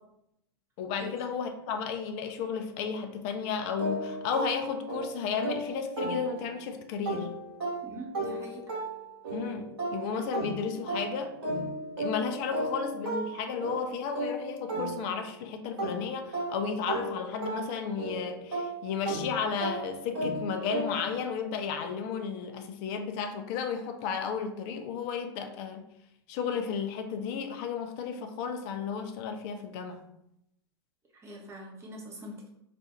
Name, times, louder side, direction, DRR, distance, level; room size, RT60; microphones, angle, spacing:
voice 1, 0.8-7.3 9.3-11.4 12.0-25.9 26.3-30.0, left 6 dB, 40° left, 6 dB, 0.4 m, -33 dB
sound 1, 3.8-6.7 7.1-15.4 15.8-21.2, right 2 dB, 65° right, 1.2 m, -35 dB
voice 2, 7.8-8.6 31.1-32.5, equal, 20° right, -1 dB, 0.8 m, -43 dB
2.5 x 2.4 x 4.0 m, 0.79 s
figure-of-eight pair, 95°, 14 cm